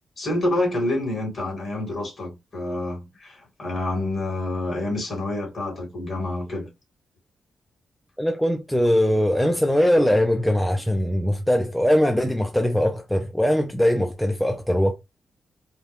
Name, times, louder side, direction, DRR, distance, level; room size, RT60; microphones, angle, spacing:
voice 1, 0.2-6.7, left 1 dB, 40° left, 2.6 m, -27 dB
voice 2, 8.2-14.9, equal, 5° left, 0.4 m, -21 dB
4.2 x 2.3 x 3.4 m
cardioid pair, 120°, 0 cm